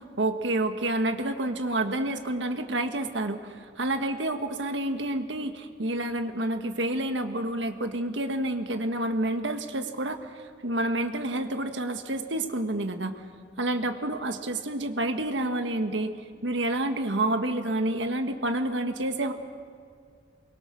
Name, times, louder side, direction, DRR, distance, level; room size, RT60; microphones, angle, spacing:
voice 1, 0.0-10.3 10.6-13.1 13.6-16.1 16.4-19.3, right 1 dB, 85° right, 6 dB, 1.5 m, -29 dB
24.0 x 22.0 x 6.3 m, 2.1 s
head